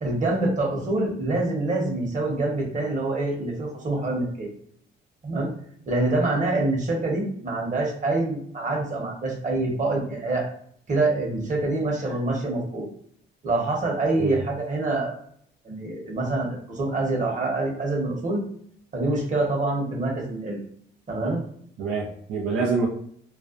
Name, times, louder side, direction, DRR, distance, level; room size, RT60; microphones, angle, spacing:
voice 1, 0.0-4.5 5.2-5.5 5.9-10.5 10.9-12.9 13.4-15.2 15.6-18.4 18.9-20.6 21.1-21.4, right 2 dB, 40° right, 0 dB, 0.9 m, -26 dB
voice 2, 21.8-22.9, right 4 dB, 85° right, -3 dB, 0.5 m, -25 dB
2.5 x 2.1 x 2.5 m, 0.64 s
cardioid pair, 90°, 20 cm